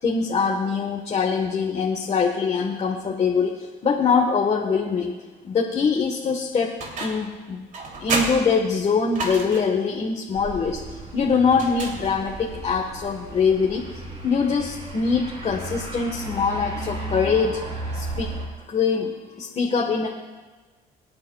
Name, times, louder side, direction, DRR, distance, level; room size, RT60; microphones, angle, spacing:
voice 1, 0.0-5.2 5.4-7.7 8.0-10.8 11.1-13.8 14.2-17.6 17.9-18.3 18.7-19.1 19.4-20.1, left 5 dB, 40° left, 1 dB, 1.3 m, -23 dB
sound 1, 6.8-7.3 7.7-9.8 11.5-12.4, right 3 dB, 50° right, 2.9 m, -30 dB
sound 2, 10.3-18.5, right 1 dB, 35° right, 3.8 m, -35 dB
25.5 x 9.5 x 2.3 m, 1.3 s
cardioid pair, 110°, 17 cm